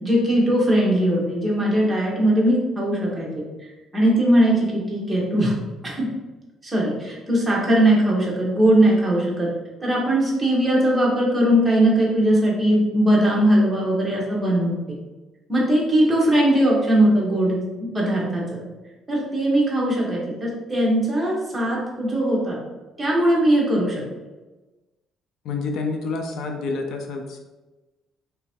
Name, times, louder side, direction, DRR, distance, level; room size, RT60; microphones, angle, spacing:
voice 1, 0.0-3.4 3.9-5.5 5.8-6.1 6.6-9.5 9.8-14.8 15.5-18.6 19.1-22.6 23.0-24.0, right 1 dB, 10° right, -4 dB, 1.1 m, -20 dB
voice 2, 25.4-27.4, left 3 dB, 65° left, 3 dB, 0.5 m, -28 dB
3.3 x 3.0 x 4.3 m, 1.1 s
cardioid pair, 155°, 0 cm